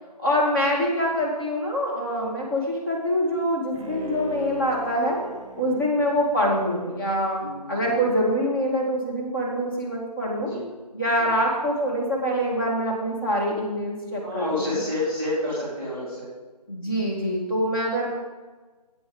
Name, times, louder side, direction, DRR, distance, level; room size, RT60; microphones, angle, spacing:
voice 1, 0.2-5.2 5.6-7.4 7.7-10.5 10.9-14.8 16.7-18.1, equal, 30° left, -3 dB, 2.0 m, -25 dB
Bowed string instrument, 3.7-8.3 8.7-8.8, right 1 dB, 10° right, 1.3 m, -40 dB
voice 2, 7.4-8.0 10.4-10.7 11.2-11.3 14.2-16.3 16.8-17.1, left 1 dB, 10° left, -11 dB, 3.5 m, -30 dB
10.0 x 8.4 x 5.3 m, 1.3 s
figure-of-eight pair, 155°, 21 cm